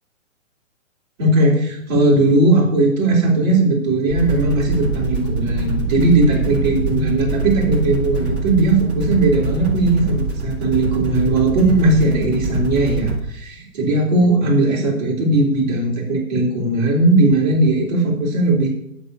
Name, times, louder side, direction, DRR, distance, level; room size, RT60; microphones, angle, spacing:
voice 1, 1.2-18.7, right 2 dB, 30° right, -4 dB, 3.7 m, -18 dB
sound 1, 4.1-13.2, right 3 dB, 10° right, 0.5 m, -24 dB
9.0 x 6.6 x 8.3 m, 0.78 s
hypercardioid pair, 165°, 40 cm